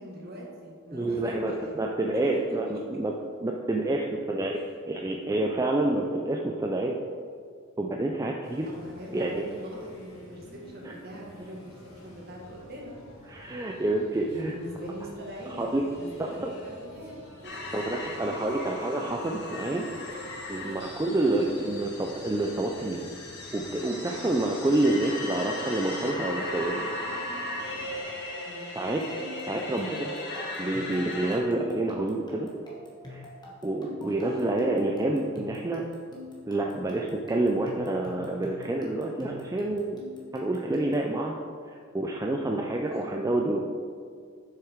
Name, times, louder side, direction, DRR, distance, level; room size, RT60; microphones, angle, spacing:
voice 1, 0.0-1.7 2.3-2.8 3.1-3.2 8.7-11.7 12.0-12.9 14.3-17.2 17.4-17.6 21.5-21.8 28.4-28.8 34.0-34.2 42.9-43.1, equal, 50° right, -2 dB, 1.7 m, -41 dB
voice 2, 0.9-3.1 3.4-4.6 4.9-7.0 7.8-8.7 9.1-9.4 10.8-10.9 13.3-14.5 15.6-15.8 16.2-16.5 17.7-19.9 20.5-23.1 23.5-26.8 28.8-29.0 29.5-30.1 30.6-32.5 33.1-33.3 33.6-35.9 36.5-40.0 40.3-41.3 41.9-43.6, right 2 dB, 15° right, 1 dB, 0.4 m, -28 dB
sound 1, 8.4-28.0, equal, 75° left, 2.2 m, -50 dB
sound 2, 17.4-31.4, left 2 dB, 55° left, 1.5 m, -37 dB
sound 3, 28.8-41.1, left 2 dB, 20° left, 1.3 m, -46 dB
7.3 x 6.5 x 4.6 m, 2.2 s
head